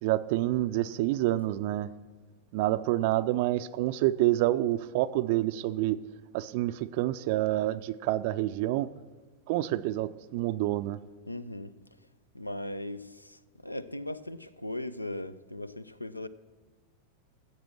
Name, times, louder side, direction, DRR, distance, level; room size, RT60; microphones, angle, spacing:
voice 1, 0.0-1.9 2.5-6.0 6.3-8.9 9.5-11.0, right 15 dB, 50° right, 0.4 m, -28 dB
voice 2, 11.3-11.7 12.3-16.3, left 1 dB, 85° left, 0.5 m, -38 dB
15.0 x 7.4 x 6.2 m
figure-of-eight pair, 90°, 0 cm